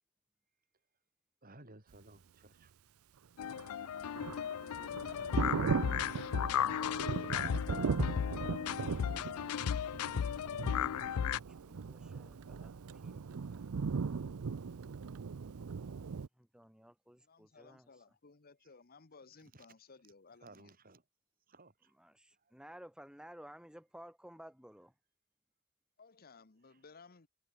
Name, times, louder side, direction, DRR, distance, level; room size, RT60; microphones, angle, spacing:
voice 1, 1.4-2.7 3.9-4.3 18.6-18.7 19.3-21.0 21.5-21.9 22.3-22.6 26.6-26.9, right 2 dB, 40° right, 4.9 m, -60 dB
sound 1, 3.4-11.4, left 8 dB, 80° left, 0.4 m, -35 dB
Thunder, 3.4-16.3, right 5 dB, 75° right, 0.5 m, -38 dB
voice 2, 10.2-12.7 13.0-14.0 16.3-18.2 22.0-24.9, equal, 5° right, 2.7 m, -57 dB
voice 3, 17.3-20.7 26.0-27.3, left 4 dB, 45° left, 1.0 m, -59 dB
head